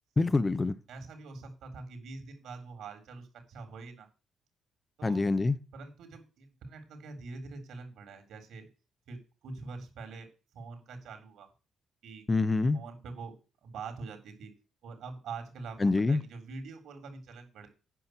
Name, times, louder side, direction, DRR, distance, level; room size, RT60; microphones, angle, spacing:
voice 1, 0.2-0.8 5.0-5.6 12.3-12.8 15.8-16.2, left 3 dB, 25° left, 0.8 m, -26 dB
voice 2, 0.9-4.1 5.0-5.2 5.7-8.7 9.1-11.5 12.0-12.3 12.7-13.4 13.6-14.5 14.8-17.7, right 4 dB, 75° right, 3.9 m, -44 dB
9.3 x 5.6 x 8.0 m
cardioid pair, 90°, 0 cm